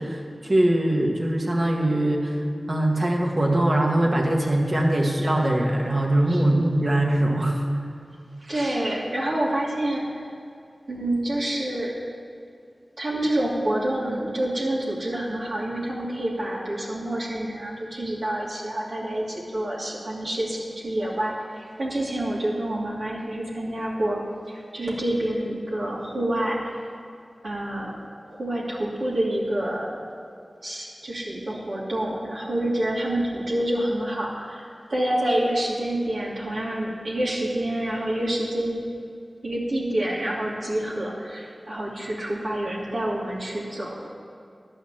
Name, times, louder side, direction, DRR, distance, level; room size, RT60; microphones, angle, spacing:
voice 1, 0.0-2.4 2.7-7.6, right 1 dB, 50° right, -1 dB, 1.9 m, -22 dB
voice 2, 8.4-10.0 10.9-11.9 13.0-24.2 24.5-26.6 27.4-28.0 28.3-29.9 30.6-38.8 39.4-44.1, right 1 dB, 80° right, -6 dB, 2.7 m, -27 dB
11.5 x 5.7 x 8.9 m, 2.4 s
cardioid pair, 40°, 0 cm